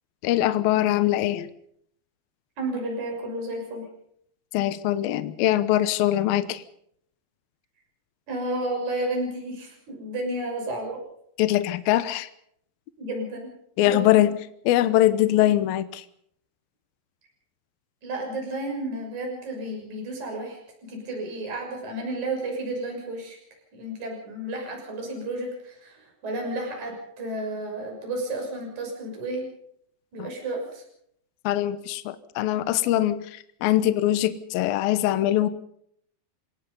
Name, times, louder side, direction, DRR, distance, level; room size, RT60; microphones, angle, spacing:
voice 1, 0.2-1.5 4.5-6.6 11.4-12.3 13.8-14.4 14.7-16.0 31.4-35.5, left 13 dB, 70° left, 13 dB, 2.5 m, -22 dB
voice 2, 2.6-3.9 8.3-11.0 13.0-13.5 13.8-14.3 18.0-23.4 23.7-29.5 30.1-30.8, right 1 dB, 40° right, 1 dB, 7.5 m, -32 dB
28.5 x 18.0 x 5.5 m, 0.69 s
omnidirectional pair, 5.1 m